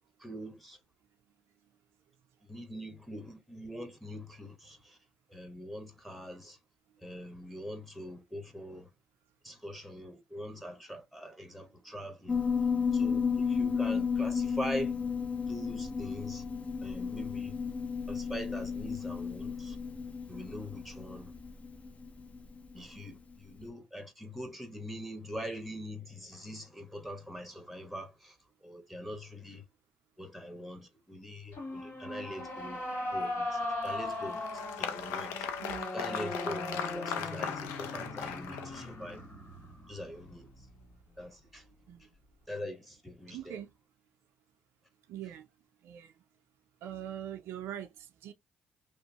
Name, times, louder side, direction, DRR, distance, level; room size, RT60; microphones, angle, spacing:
voice 1, 0.2-0.8 2.5-5.0 5.3-6.6 7.0-8.9 9.4-12.4 12.9-14.9 15.5-16.4 16.8-17.5 18.1-19.8 20.3-21.3 22.7-29.6 30.2-32.8 33.1-34.5 34.8-35.5 35.9-39.2 39.9-40.5 41.2-41.6 42.5-43.6, equal, 5° left, 1.0 m, -43 dB
Piano, 12.3-23.0, left 6 dB, 35° left, 0.6 m, -33 dB
sound 1, 31.5-40.9, left 1 dB, 60° left, 1.5 m, -39 dB
Applause, 33.8-39.1, left 7 dB, 90° left, 0.4 m, -38 dB
voice 2, 35.6-35.9 41.9-42.1 43.3-43.7 45.1-45.5 45.8-46.1 46.8-48.3, right 11 dB, 80° right, 0.4 m, -42 dB
2.9 x 2.0 x 2.7 m
supercardioid pair, 70°, 4 cm